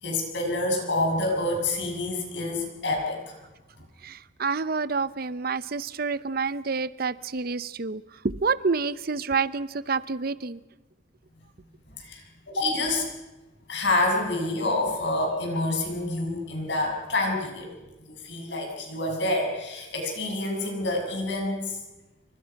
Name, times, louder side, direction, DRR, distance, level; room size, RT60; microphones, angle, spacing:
voice 1, 0.0-3.4 12.0-12.2 12.5-13.1 13.7-17.7 18.1-21.8, left 2 dB, 65° left, 1 dB, 7.0 m, -27 dB
voice 2, 4.0-10.6, right 4 dB, 50° right, 16 dB, 0.8 m, -28 dB
28.5 x 24.0 x 5.9 m, 1.1 s
head